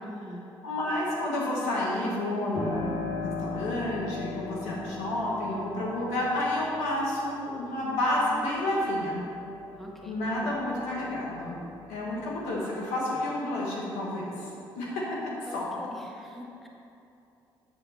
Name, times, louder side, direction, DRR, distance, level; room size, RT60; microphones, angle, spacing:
voice 1, 0.0-0.5 9.8-10.6 15.5-16.7, equal, ahead, -1 dB, 1.7 m, -44 dB
voice 2, 0.6-9.2 10.1-11.6 11.9-14.5 14.7-15.0 15.5-15.7, left 1 dB, 85° left, -4 dB, 1.8 m, -30 dB
Piano, 2.5-11.0 11.4-12.4, left 3 dB, 55° left, 2.1 m, -39 dB
8.0 x 7.8 x 4.4 m, 2.8 s
hypercardioid pair, 55°, 11 cm